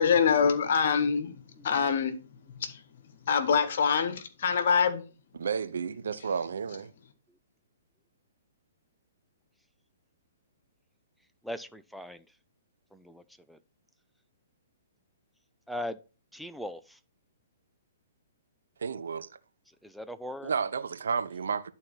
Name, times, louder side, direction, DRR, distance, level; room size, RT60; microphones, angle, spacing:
voice 1, 0.0-1.3 1.6-2.1 2.6-2.8 3.2-5.0, left 6 dB, 60° left, 1.6 m, -25 dB
voice 2, 5.3-6.9 18.8-19.3 20.4-21.7, right 6 dB, 70° right, 0.8 m, -32 dB
voice 3, 11.4-12.2 12.9-13.2 13.5-13.6 15.7-16.0 16.3-17.0 19.8-20.5, equal, ahead, 0.6 m, -39 dB
11.0 x 4.3 x 5.6 m
hypercardioid pair, 125°, 0 cm